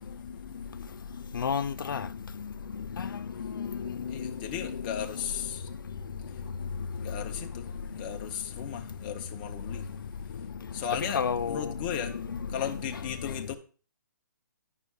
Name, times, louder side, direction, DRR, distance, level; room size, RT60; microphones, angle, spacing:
voice 1, 1.3-2.1 3.0-3.1 3.4-4.3 4.6-4.7 11.0-11.7 12.6-12.7, left 6 dB, 85° left, 0.4 m, -31 dB
voice 2, 4.1-5.7 7.0-7.7 7.9-9.9 10.7-12.2 12.5-13.6, left 9 dB, 25° left, 0.7 m, -36 dB
11.0 x 5.4 x 2.3 m
hypercardioid pair, 155°, 11 cm